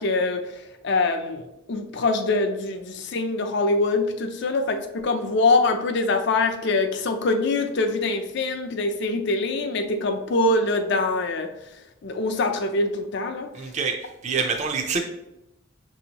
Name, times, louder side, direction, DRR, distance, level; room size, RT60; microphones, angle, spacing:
voice 1, 0.0-11.5 12.0-13.5, left 3 dB, 60° left, 6 dB, 0.5 m, -24 dB
voice 2, 13.5-15.0, right 5 dB, 35° right, 3 dB, 0.4 m, -26 dB
6.1 x 2.7 x 2.8 m, 0.88 s
head